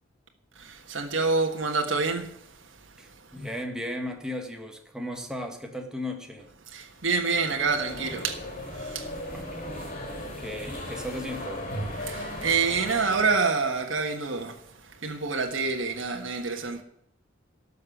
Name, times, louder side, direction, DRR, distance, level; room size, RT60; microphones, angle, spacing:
voice 1, 0.5-3.3 6.7-9.3 12.0-16.8, right 4 dB, 70° right, 1.5 m, -28 dB
voice 2, 3.0-6.5 9.2-11.6, left 1 dB, 5° right, 1.7 m, -36 dB
sound 1, 7.3-13.4, left 1 dB, 45° left, 4.7 m, -37 dB
12.5 x 6.7 x 8.8 m
head